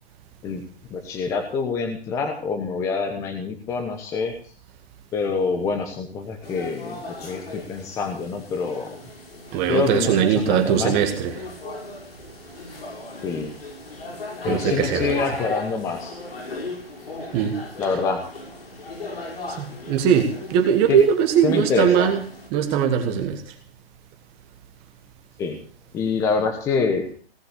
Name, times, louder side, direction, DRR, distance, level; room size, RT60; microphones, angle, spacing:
voice 1, 0.9-4.3 5.1-9.0 9.7-10.9 13.2-13.6 14.4-16.2 17.8-18.2 20.9-21.0 21.4-22.1 25.4-25.6 25.9-27.0, left 4 dB, 10° left, 5 dB, 1.1 m, -26 dB
sound 1, 6.4-22.5, left 3 dB, 75° left, 6.6 m, -37 dB
voice 2, 9.5-11.4 14.5-15.2 17.3-17.6 19.5-22.2 22.5-23.4, right 8 dB, 20° right, 6 dB, 1.4 m, -20 dB
18.0 x 7.9 x 8.1 m, 0.44 s
hypercardioid pair, 155°, 30 cm